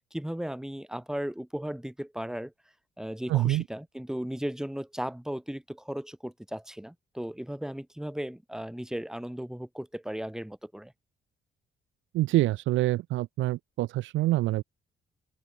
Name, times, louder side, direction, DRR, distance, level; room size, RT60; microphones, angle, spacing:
voice 1, 0.1-2.5 3.0-10.9, equal, 5° right, 3.0 m, -36 dB
voice 2, 3.3-3.6 12.1-14.6, right 16 dB, 80° right, 0.5 m, -26 dB
cardioid pair, 90°, 20 cm